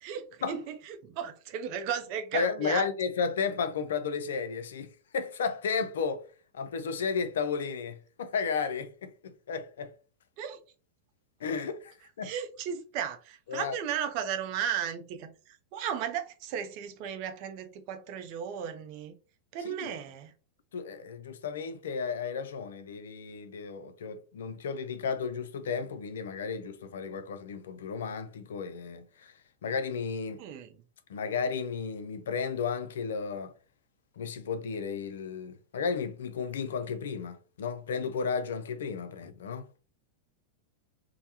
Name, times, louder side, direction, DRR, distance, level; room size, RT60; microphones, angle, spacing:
voice 1, 0.0-2.8 10.4-10.6 12.2-19.1 19.5-20.3 30.4-30.7, right 8 dB, 45° right, 0.5 m, -35 dB
voice 2, 2.3-4.9 5.1-6.2 6.5-9.9 11.4-12.3 13.5-13.8 19.6-20.0 20.7-29.3 29.6-30.4 31.1-33.5 34.2-39.7, left 5 dB, 60° left, 0.4 m, -33 dB
3.2 x 2.0 x 2.7 m
figure-of-eight pair, 90°, 0 cm